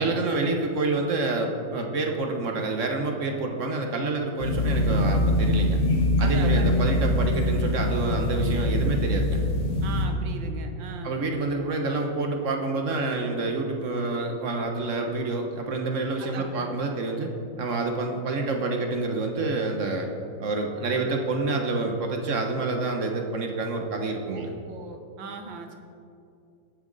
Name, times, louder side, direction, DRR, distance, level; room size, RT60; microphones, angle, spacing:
voice 1, 0.0-5.8 6.2-9.4 11.0-17.3 17.6-20.1 20.4-24.5, right 3 dB, 50° right, 3 dB, 1.1 m, -28 dB
sound 1, 4.4-10.1, left 1 dB, 40° left, 1.4 m, -23 dB
voice 2, 6.2-6.8 9.8-11.2 16.2-16.7 24.3-25.8, right 4 dB, 75° right, 6 dB, 1.7 m, -38 dB
17.0 x 7.0 x 4.0 m, 2.5 s
omnidirectional pair, 2.2 m